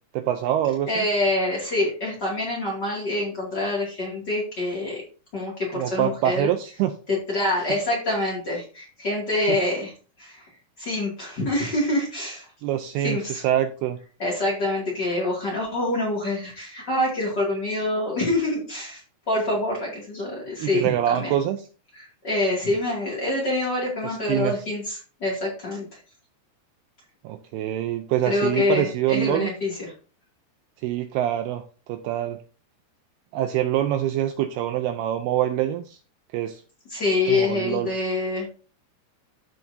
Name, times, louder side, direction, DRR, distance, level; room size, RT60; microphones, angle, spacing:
voice 1, 0.1-1.1 5.7-6.9 9.5-9.6 12.6-14.0 20.6-21.7 24.0-24.5 27.2-29.5 30.8-31.6 31.9-32.4 33.3-36.0 36.3-36.6 37.3-37.9, right 12 dB, 80° right, 8 dB, 2.4 m, -25 dB
voice 2, 0.9-5.0 5.3-6.5 7.1-9.9 10.2-10.5 10.8-12.5 13.0-13.4 14.2-21.3 21.9-26.0 28.2-29.9 36.9-38.5, left 2 dB, 30° left, -4 dB, 2.2 m, -26 dB
14.0 x 4.7 x 2.7 m, 0.37 s
omnidirectional pair, 5.0 m